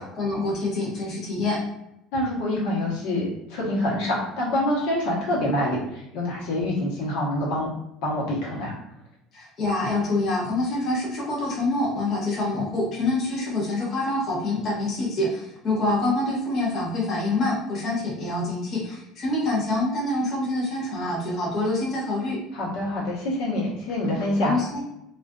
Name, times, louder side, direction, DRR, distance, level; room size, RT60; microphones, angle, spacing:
voice 1, 0.0-1.6 9.3-22.4 24.4-24.8, left 2 dB, 40° left, -5 dB, 0.8 m, -26 dB
voice 2, 2.1-7.7 8.0-8.7 22.5-24.6, left 1 dB, 80° left, -5 dB, 0.9 m, -26 dB
2.4 x 2.4 x 2.2 m, 0.86 s
cardioid pair, 135°, 0 cm